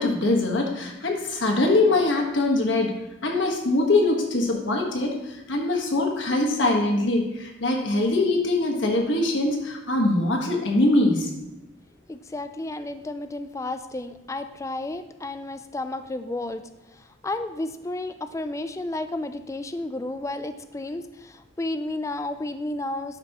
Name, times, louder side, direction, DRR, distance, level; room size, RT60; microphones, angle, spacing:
voice 1, 0.0-3.0 3.2-11.3, left 2 dB, 65° left, 1 dB, 1.4 m, -23 dB
voice 2, 12.1-16.6 16.9-23.2, left 2 dB, 15° left, 10 dB, 0.3 m, -32 dB
11.0 x 5.1 x 2.9 m, 0.94 s
head